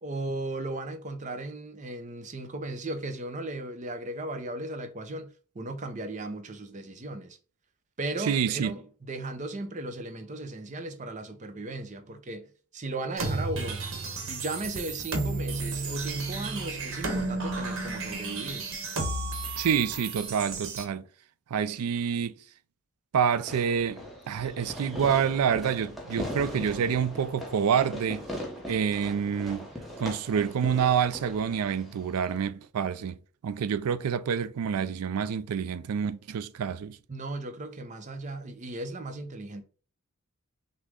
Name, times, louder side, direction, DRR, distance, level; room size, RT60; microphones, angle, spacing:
voice 1, 0.0-7.4 8.0-13.8 14.2-18.6 37.1-39.6, right 2 dB, 35° right, 0.6 m, -36 dB
voice 2, 8.2-8.7 19.6-21.0 21.5-22.4 23.1-28.3 28.7-29.7 30.0-33.2 33.4-37.0, right 7 dB, 85° right, 0.4 m, -27 dB
sound 1, 13.2-20.8, right 3 dB, 60° right, 1.0 m, -33 dB
Fireworks, 23.5-32.5, left 1 dB, ahead, 0.8 m, -40 dB
6.0 x 2.1 x 3.6 m
head